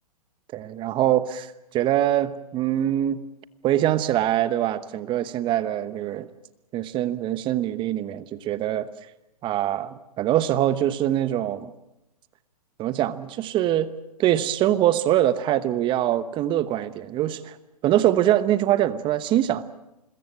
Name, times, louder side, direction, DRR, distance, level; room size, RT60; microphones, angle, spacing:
voice 1, 0.5-3.2 3.6-6.3 6.7-8.9 9.4-11.7 12.8-13.9 14.2-17.5 17.8-19.6, right 12 dB, 25° right, 15 dB, 1.0 m, -23 dB
26.0 x 21.5 x 7.5 m, 0.90 s
hypercardioid pair, 125°, 20 cm